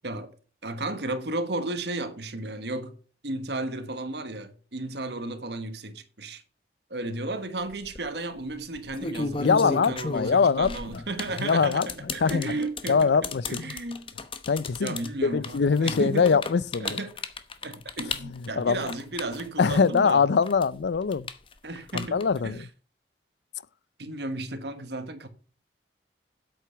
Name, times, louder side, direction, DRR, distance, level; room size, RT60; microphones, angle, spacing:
voice 1, 0.6-3.0 3.2-6.4 6.9-14.1 14.8-16.4 16.8-17.2 17.6-20.3 21.6-22.7 24.0-25.3, right 2 dB, 75° right, 1.4 m, -34 dB
sound 1, 7.6-8.0 8.7-20.1 20.4-22.5, left 3 dB, 30° left, 0.9 m, -34 dB
voice 2, 9.4-10.7 11.4-11.9 12.2-12.6 12.9-13.7 14.5-14.9 15.2-17.0 18.2-18.8 19.6-21.3 21.9-22.6, left 5 dB, 80° left, 0.5 m, -23 dB
8.4 x 8.0 x 5.7 m
head